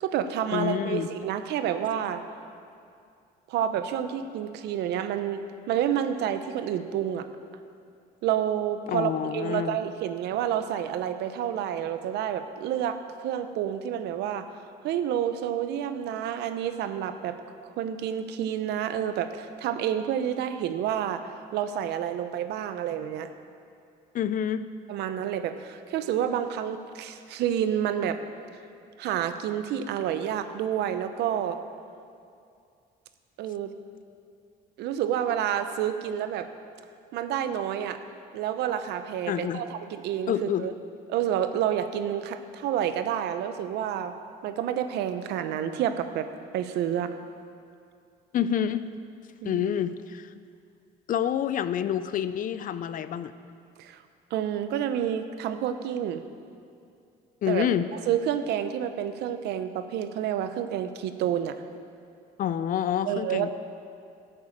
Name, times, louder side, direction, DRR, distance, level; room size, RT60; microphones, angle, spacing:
voice 1, 0.0-2.2 3.5-7.3 8.2-14.5 14.8-17.4 17.6-21.2 21.5-23.3 24.9-28.2 29.0-31.6 33.4-33.7 34.8-36.5 37.1-38.0 38.3-40.7 41.1-44.2 44.4-46.3 46.5-47.1 49.4-49.7 53.8-54.0 54.3-56.2 57.5-57.7 58.1-61.6 63.1-63.5, right 10 dB, 80° right, 10 dB, 0.8 m, -29 dB
voice 2, 0.5-1.1 8.9-9.8 24.1-24.6 39.3-39.6 40.3-40.7 48.3-48.8 49.4-50.3 51.1-53.3 57.4-57.9 62.4-63.5, left 9 dB, 55° left, 13 dB, 0.6 m, -27 dB
12.0 x 8.1 x 7.3 m, 2.4 s
cardioid pair, 110°, 17 cm